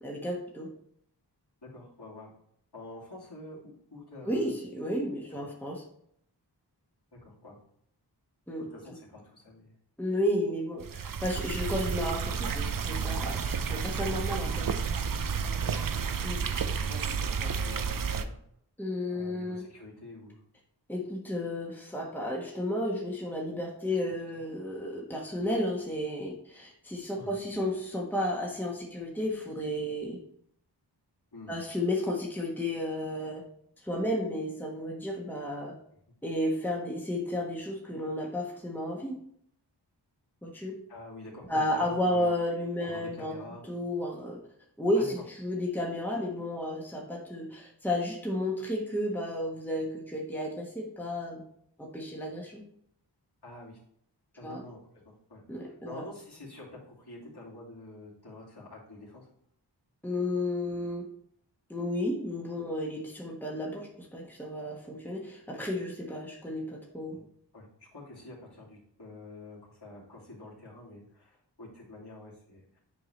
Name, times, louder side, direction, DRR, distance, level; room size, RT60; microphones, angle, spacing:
voice 1, 0.0-0.7 4.2-5.8 8.5-8.6 10.0-14.7 16.2-16.5 18.8-19.6 20.9-30.2 31.5-33.4 33.8-35.7 36.2-39.2 40.4-40.7 41.5-43.4 43.7-44.4 44.8-51.4 51.8-52.6 54.4-54.6 55.5-56.0 60.0-61.1 61.7-67.2, left 1 dB, 5° left, -1 dB, 1.3 m, -32 dB
voice 2, 1.6-2.3 2.7-4.5 5.4-5.5 7.2-7.6 8.6-9.7 15.5-16.2 16.6-18.4 19.1-20.4 27.2-27.4 31.3-31.6 40.9-42.3 42.8-43.6 44.9-45.1 53.4-53.8 54.4-54.8 55.0-59.3 67.1-67.3 67.5-72.8, left 2 dB, 65° left, -6 dB, 2.7 m, -47 dB
sound 1, 10.8-18.2, right 6 dB, 50° right, 0.5 m, -31 dB
7.9 x 4.7 x 3.2 m, 0.68 s
wide cardioid pair, 50°, 43 cm